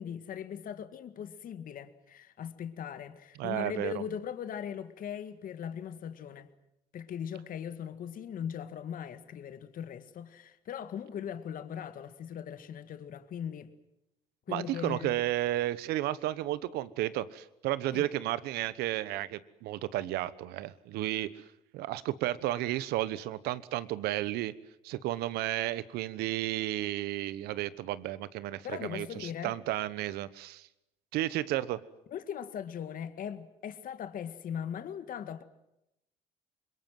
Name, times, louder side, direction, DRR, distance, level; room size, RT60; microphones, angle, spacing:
voice 1, 0.0-6.5 6.9-13.7 14.5-15.2 17.9-18.1 28.6-29.5 32.1-35.4, left 8 dB, 60° left, 1.8 m, -39 dB
voice 2, 3.4-4.0 14.5-21.3 21.7-24.5 24.8-30.7 31.1-31.8, right 15 dB, 80° right, 1.1 m, -33 dB
26.0 x 22.0 x 7.7 m
supercardioid pair, 70°, 16 cm